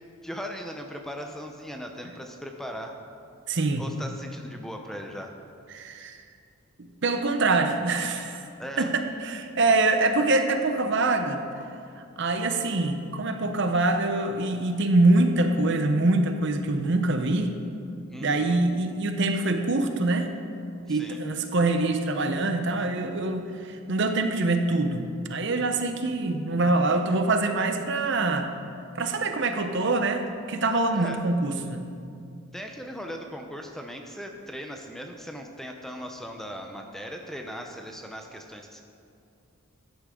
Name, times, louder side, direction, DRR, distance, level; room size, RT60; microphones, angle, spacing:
voice 1, 0.2-3.0 3.8-5.4 8.6-8.9 18.1-18.6 20.9-21.2 30.9-31.2 32.5-38.8, equal, ahead, 3 dB, 0.6 m, -38 dB
voice 2, 3.5-3.8 5.7-6.2 6.8-8.4 8.8-11.4 12.0-17.5 18.2-20.3 20.9-25.0 25.3-28.5 28.9-31.9, right 2 dB, 55° right, 7 dB, 0.7 m, -24 dB
13.5 x 10.0 x 3.7 m, 2.5 s
head